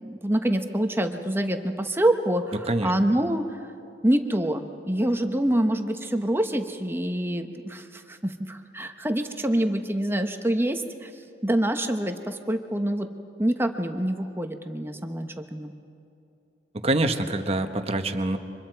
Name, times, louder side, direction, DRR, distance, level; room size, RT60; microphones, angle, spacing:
voice 1, 0.0-3.4 4.0-11.1 11.4-13.1 13.4-15.7, right 1 dB, 15° right, 6 dB, 1.0 m, -26 dB
voice 2, 16.7-18.4, right 2 dB, 35° right, 7 dB, 1.2 m, -25 dB
29.0 x 25.0 x 4.7 m, 2.5 s
head